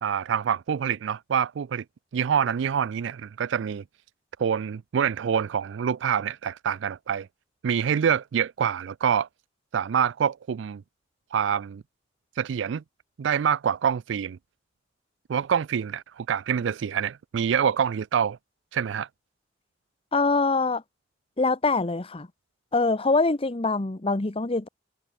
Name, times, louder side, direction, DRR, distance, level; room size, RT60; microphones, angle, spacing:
voice 1, 0.0-1.8 2.1-3.8 4.4-7.3 7.6-9.3 9.7-10.8 11.3-11.8 12.4-12.8 13.2-14.4 15.3-18.4 18.7-19.1, right 8 dB, 90° right, 0.4 m, -26 dB
voice 2, 20.1-20.8 21.4-22.3 22.7-24.7, left 3 dB, 30° left, 1.0 m, -24 dB
head